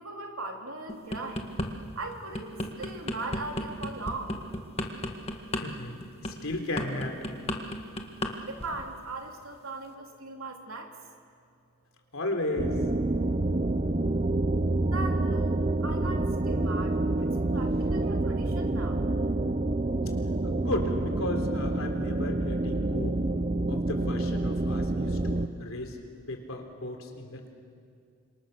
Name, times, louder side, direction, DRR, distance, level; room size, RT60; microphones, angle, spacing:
voice 1, 0.0-1.5 1.9-4.3 8.4-10.9 14.8-15.6 15.8-16.9 17.5-19.0, right 3 dB, 75° right, 2 dB, 3.3 m, -39 dB
sound 1, 0.9-1.7 2.1-8.3 8.6-8.9, left 1 dB, 25° left, 1.7 m, -33 dB
voice 2, 5.6-7.2 12.1-12.8 20.4-23.2 23.7-26.0 26.3-27.5, left 1 dB, 70° left, 3 dB, 3.7 m, -35 dB
sound 2, 12.6-25.5, right 2 dB, 30° right, 0.7 m, -28 dB
30.0 x 26.5 x 6.8 m, 2.3 s
head